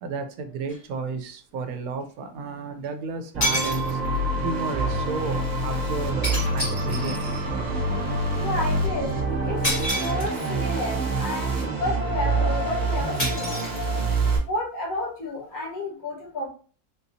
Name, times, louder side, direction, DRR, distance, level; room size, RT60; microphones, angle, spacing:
voice 1, 0.0-4.0 4.4-7.2, right 4 dB, 80° right, 7 dB, 1.0 m, -32 dB
sound 1, 0.7-0.8 2.8-2.9 3.4-4.3 6.2-7.5 9.6-10.6 13.2-14.3, equal, 25° left, 1.2 m, -29 dB
sound 2, 3.3-14.4, right 2 dB, 35° right, 0.9 m, -26 dB
sound 3, 4.6-9.9, equal, 50° left, 1.0 m, -38 dB
voice 2, 8.4-9.1 9.4-13.6 14.5-16.5, left 1 dB, 70° left, -3 dB, 1.6 m, -31 dB
3.8 x 2.7 x 2.6 m, 0.40 s
omnidirectional pair, 1.6 m